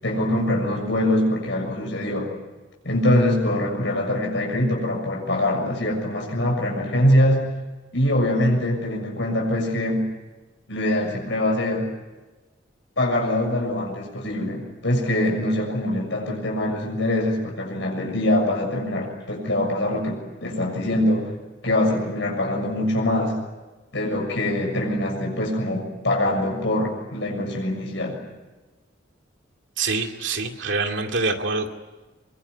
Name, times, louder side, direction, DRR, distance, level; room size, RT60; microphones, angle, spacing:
voice 1, 0.0-2.3 2.8-7.5 7.9-10.1 10.7-11.9 13.0-21.3 21.6-23.4 23.9-28.2, left 1 dB, 70° left, 0 dB, 6.8 m, -23 dB
voice 2, 29.8-31.7, right 3 dB, 70° right, 4 dB, 2.6 m, -25 dB
25.0 x 23.5 x 9.7 m, 1.2 s
head